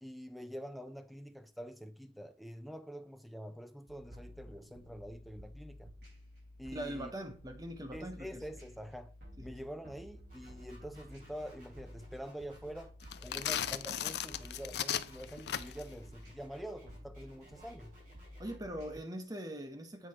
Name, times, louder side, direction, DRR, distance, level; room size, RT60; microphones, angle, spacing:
voice 1, 0.0-5.9 6.6-7.1 7.9-9.1 9.4-12.9 13.2-17.9, equal, ahead, 0.5 m, -46 dB
sound 1, 3.9-19.0, left 1 dB, 65° right, 4.1 m, -53 dB
voice 2, 6.7-8.4 9.4-9.5 18.4-20.1, right 1 dB, 20° right, 0.9 m, -42 dB
sound 2, 10.3-18.5, right 1 dB, 45° right, 3.9 m, -60 dB
sound 3, 13.0-15.9, left 10 dB, 65° left, 0.4 m, -36 dB
7.9 x 4.7 x 4.3 m
head